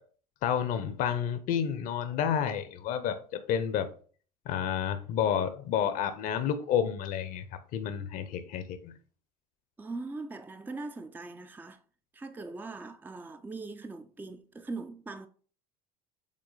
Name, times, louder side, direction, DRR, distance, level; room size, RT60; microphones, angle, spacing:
voice 1, 0.4-3.9 4.5-8.9, left 8 dB, 45° left, 0.8 m, -30 dB
voice 2, 9.8-11.8 12.1-15.3, right 3 dB, 10° right, 0.5 m, -41 dB
7.4 x 4.3 x 4.1 m
figure-of-eight pair, 70°, 19 cm